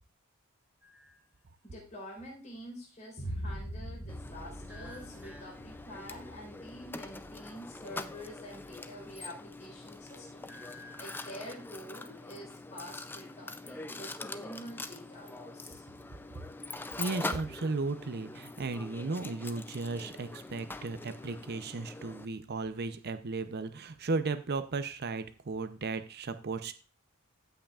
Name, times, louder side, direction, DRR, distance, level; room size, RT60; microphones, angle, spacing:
sound 1, 0.8-1.3 4.7-5.9 10.5-11.6 14.4-15.3, left 1 dB, 10° right, 1.1 m, -54 dB
voice 1, 1.6-15.8, equal, 35° left, -2 dB, 4.2 m, -47 dB
Boom, 3.2-11.0, equal, 70° left, 2.6 m, -44 dB
Mechanisms, 4.1-22.2, left 2 dB, 10° left, 0.4 m, -44 dB
voice 2, 17.0-26.7, right 3 dB, 50° right, 11 dB, 0.6 m, -35 dB
15.5 x 5.7 x 2.4 m, 0.39 s
head